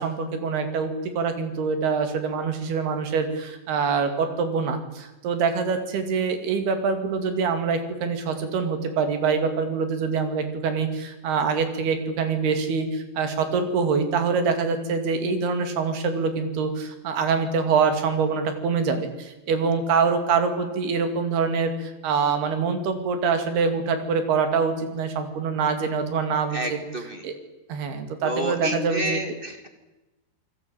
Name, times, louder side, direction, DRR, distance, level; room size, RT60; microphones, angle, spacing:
voice 1, 0.0-27.3 27.7-29.2, right 5 dB, 85° right, 7 dB, 4.5 m, -25 dB
voice 2, 26.5-27.2 28.2-29.7, right 1 dB, 25° right, 6 dB, 1.1 m, -29 dB
28.0 x 19.5 x 9.0 m, 1.0 s
omnidirectional pair, 4.4 m